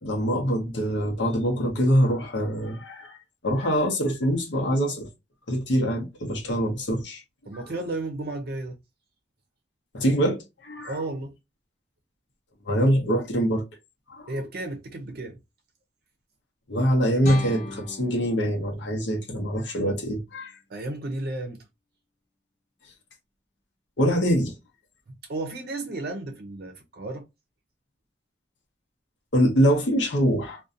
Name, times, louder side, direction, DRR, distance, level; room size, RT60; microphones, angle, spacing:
voice 1, 0.0-3.2 3.4-5.1 5.5-7.2 9.9-11.0 12.7-13.6 14.1-14.3 16.7-20.6 24.0-24.5 29.3-30.6, equal, 75° left, 0.7 m, -24 dB
voice 2, 7.5-8.8 10.8-11.3 14.3-15.4 20.7-21.6 25.3-27.3, right 2 dB, 55° right, 0.5 m, -33 dB
sound 1, 17.2-20.2, left 2 dB, 40° left, 0.8 m, -39 dB
2.5 x 2.2 x 2.4 m
head